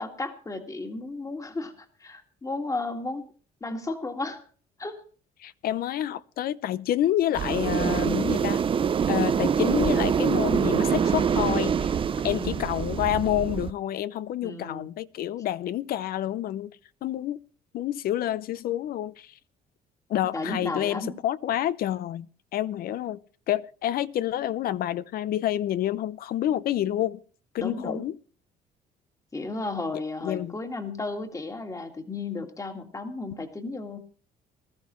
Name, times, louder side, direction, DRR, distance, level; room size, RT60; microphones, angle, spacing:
voice 1, 0.0-3.3 3.6-4.4 4.8-5.0 12.2-12.6 14.4-14.9 20.3-21.1 27.6-28.1 29.3-34.0, left 2 dB, 20° left, 1.9 m, -34 dB
voice 2, 5.4-8.6 9.1-12.0 12.2-16.8 17.0-17.4 17.7-19.4 20.1-23.2 23.5-27.2 27.5-28.2 30.2-30.6, left 12 dB, 60° left, 0.6 m, -28 dB
sound 1, 7.4-13.7, right 7 dB, 30° right, 0.5 m, -25 dB
20.0 x 13.0 x 3.1 m
cardioid pair, 110°, 17 cm